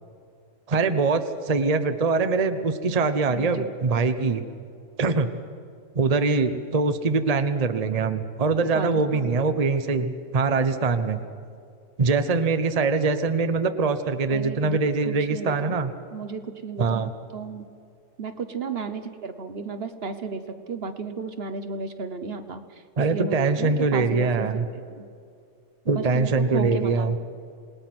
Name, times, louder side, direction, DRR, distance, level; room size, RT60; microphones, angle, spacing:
voice 1, 0.7-4.4 5.0-5.3 5.9-11.2 12.0-15.9 16.8-17.1 23.0-24.6 25.9-27.2, right 4 dB, 35° right, 9 dB, 0.9 m, -23 dB
voice 2, 3.3-3.7 8.6-9.5 14.3-14.8 15.1-15.7 16.1-17.6 18.2-22.8 23.1-24.6 25.0-25.1 25.8-27.1, right 5 dB, 55° right, 9 dB, 1.2 m, -33 dB
27.5 x 19.5 x 6.0 m, 2.3 s
omnidirectional pair, 1.2 m